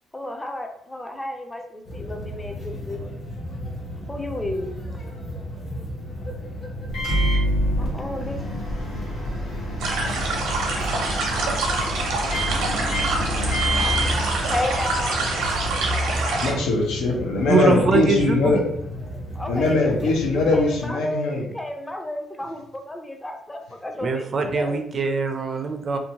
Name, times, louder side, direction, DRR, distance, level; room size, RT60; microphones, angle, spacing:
voice 1, 0.1-3.0 4.1-4.7 7.8-8.4 14.5-15.2 19.3-24.8, left 1 dB, 15° left, 4 dB, 0.4 m, -32 dB
sound 1, 1.9-20.9, left 1 dB, 45° left, 0.8 m, -35 dB
Microwave oven, 6.9-15.1, equal, 70° left, 1.1 m, -27 dB
sound 2, 9.8-16.5, right 2 dB, 90° right, 0.6 m, -25 dB
voice 2, 16.4-18.6 19.4-21.5, left 2 dB, 90° left, 0 dB, 0.6 m, -21 dB
voice 3, 17.5-18.6 24.0-26.0, right 4 dB, 45° right, 6 dB, 0.4 m, -23 dB
2.6 x 2.2 x 2.8 m, 0.75 s
cardioid pair, 90°, 0 cm